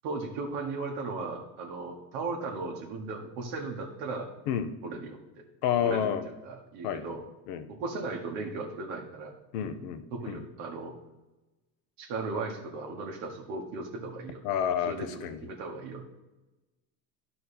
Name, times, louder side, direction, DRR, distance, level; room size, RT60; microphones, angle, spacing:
voice 1, 0.0-4.3 4.8-5.2 5.8-7.2 7.7-9.3 9.6-9.7 10.1-10.9 12.0-14.4 14.9-16.0, right 3 dB, 70° right, 1 dB, 1.4 m, -36 dB
voice 2, 5.6-6.2 6.8-7.2 7.5-7.7 9.5-10.4 14.4-14.9 15.2-15.4, left 9 dB, 70° left, 11 dB, 0.9 m, -29 dB
11.0 x 4.3 x 4.2 m, 1.1 s
supercardioid pair, 90°, 49 cm